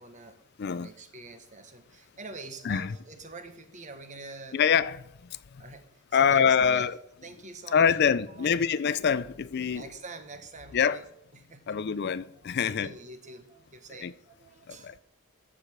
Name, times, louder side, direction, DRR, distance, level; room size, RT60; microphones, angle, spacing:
voice 1, 0.0-4.6 5.6-6.9 7.2-8.7 9.7-11.1 11.3-11.8 12.4-15.0, right 3 dB, 35° right, 1.2 m, -46 dB
voice 2, 0.6-0.9 2.6-2.9 4.5-5.0 6.1-6.9 7.7-9.8 10.7-11.0 11.7-12.9 14.0-14.1 14.7-14.9, left 7 dB, 50° left, 0.4 m, -25 dB
14.0 x 5.0 x 7.3 m
head